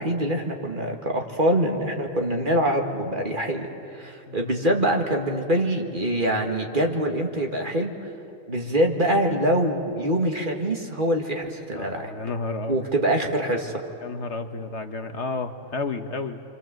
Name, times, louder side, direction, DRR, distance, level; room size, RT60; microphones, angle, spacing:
voice 1, 0.0-3.7 3.9-7.9 8.5-12.1 12.7-13.8, right 1 dB, 35° right, 2 dB, 2.0 m, -24 dB
voice 2, 11.8-12.9 14.0-16.4, left 3 dB, 55° left, 7 dB, 1.3 m, -31 dB
27.0 x 25.5 x 7.6 m, 2.6 s
omnidirectional pair, 1.5 m